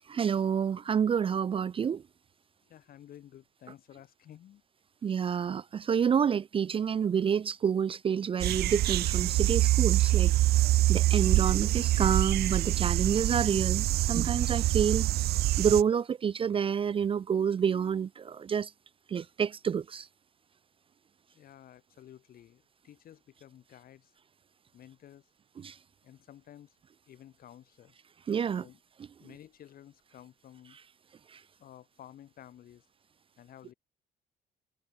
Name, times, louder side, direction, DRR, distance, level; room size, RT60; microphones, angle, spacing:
voice 1, 0.1-2.0 5.0-10.3 10.9-15.1 15.6-18.7 19.1-20.1 25.6-25.8 28.3-28.6 31.3-31.4, right 7 dB, 30° right, 0.5 m, -28 dB
voice 2, 2.6-4.6 21.3-24.1 24.7-25.3 26.0-26.8 27.1-27.9 28.6-28.8 29.2-30.8 31.6-32.9 33.4-33.7, left 11 dB, 60° left, 7.8 m, -53 dB
sound 1, 8.4-15.8, right 15 dB, 70° right, 0.8 m, -25 dB
cardioid pair, 110°, 17 cm